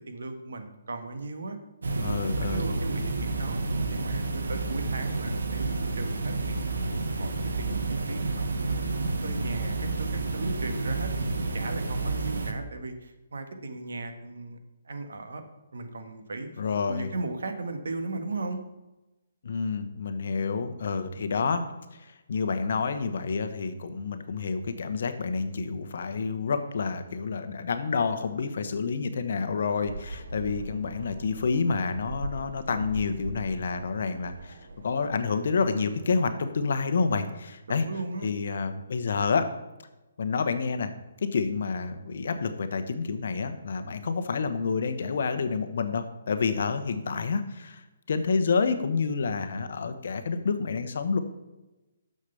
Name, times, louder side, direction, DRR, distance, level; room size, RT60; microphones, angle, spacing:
voice 1, 0.1-1.6 1.9-3.6 3.9-6.7 7.1-14.6 14.8-15.4 15.7-16.5 16.9-18.6 37.7-38.3, right 3 dB, 70° right, 7 dB, 1.3 m, -37 dB
sound 1, 1.8-12.5, right 3 dB, 85° right, 1.2 m, -30 dB
voice 2, 2.0-2.6 16.6-17.1 19.4-21.6 22.3-34.5 34.8-37.8 38.2-39.5 40.2-40.9 41.2-47.8 48.1-51.2, left 5 dB, 50° left, 9 dB, 0.8 m, -28 dB
sound 2, 29.9-36.1, right 2 dB, 55° right, 0.8 m, -41 dB
6.6 x 6.5 x 6.9 m, 1.0 s
hypercardioid pair, 180°, 0 cm